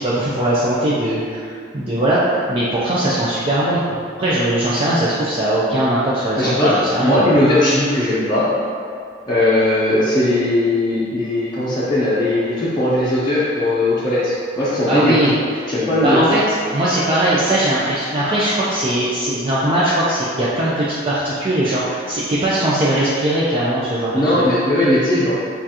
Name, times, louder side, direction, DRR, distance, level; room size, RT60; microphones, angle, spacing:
voice 1, 0.0-7.3 14.9-15.6 16.0-16.4 16.7-24.4, right 1 dB, 30° right, -8 dB, 0.5 m, -20 dB
voice 2, 6.4-8.5 9.3-15.4 15.7-16.2 24.1-25.3, left 1 dB, 25° left, -11 dB, 0.6 m, -18 dB
6.8 x 2.5 x 2.8 m, 2.3 s
head